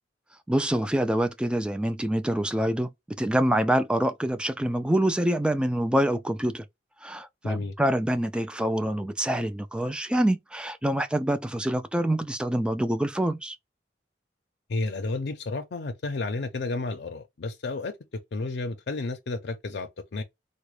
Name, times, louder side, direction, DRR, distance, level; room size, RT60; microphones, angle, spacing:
voice 1, 0.5-2.9 3.2-6.6 7.0-13.6, right 1 dB, 5° right, 0.3 m, -26 dB
voice 2, 7.4-7.7 14.7-20.2, left 3 dB, 70° left, 0.5 m, -32 dB
3.9 x 2.1 x 3.2 m
head